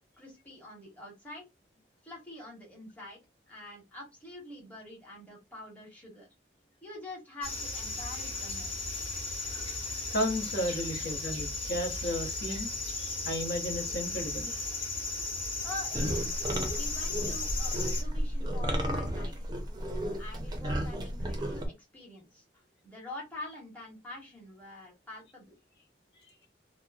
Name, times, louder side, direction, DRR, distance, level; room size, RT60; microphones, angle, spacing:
voice 1, 0.2-1.5 2.0-3.2 3.5-6.3 6.8-9.0 15.6-16.4 16.7-19.4 20.2-25.5, left 1 dB, 10° left, 1.0 m, -45 dB
sound 1, 7.4-18.0, left 3 dB, 30° left, 0.9 m, -35 dB
voice 2, 10.1-14.5, equal, 60° left, 0.8 m, -34 dB
sound 2, 15.9-21.7, equal, 25° right, 0.5 m, -33 dB
2.9 x 2.0 x 2.3 m
head